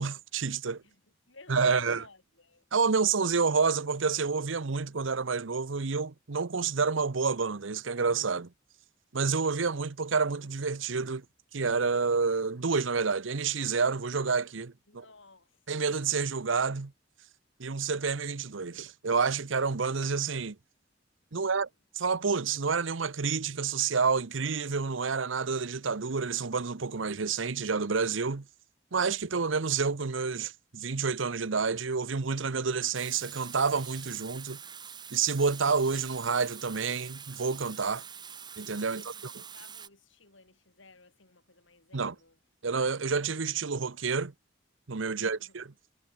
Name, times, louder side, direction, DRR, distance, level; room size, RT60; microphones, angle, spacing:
voice 1, 0.0-0.8 1.5-2.0 2.7-8.5 9.1-11.2 11.5-14.7 15.7-16.9 17.6-20.6 21.3-21.7 22.0-28.5 28.9-34.6 35.1-38.0 38.6-39.3 41.9-42.1 42.6-44.3 44.9-45.6, right 5 dB, 85° right, 0.9 m, -29 dB
voice 2, 0.8-2.7 14.9-15.7 21.3-21.7 38.9-42.4 45.1-45.6, left 3 dB, 85° left, 7.0 m, -55 dB
Water tap faucet / Sink (filling or washing), 32.9-39.9, right 7 dB, 25° right, 3.8 m, -45 dB
head